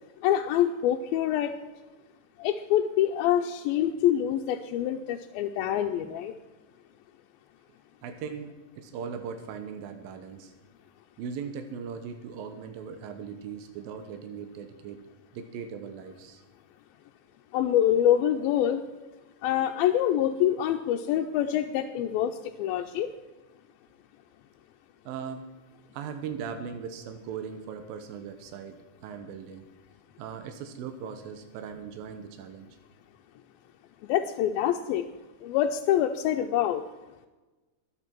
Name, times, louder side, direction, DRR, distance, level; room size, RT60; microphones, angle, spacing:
voice 1, 0.2-1.5 2.4-6.3 17.5-18.8 19.4-23.1 34.0-35.1 35.4-36.8, left 11 dB, 90° left, 3 dB, 2.5 m, -25 dB
voice 2, 8.0-10.5 11.2-15.0 15.3-16.4 25.1-25.4 25.9-29.7 30.2-32.8, right 6 dB, 80° right, 7 dB, 2.8 m, -39 dB
22.5 x 8.4 x 4.5 m, 1.2 s
omnidirectional pair, 4.2 m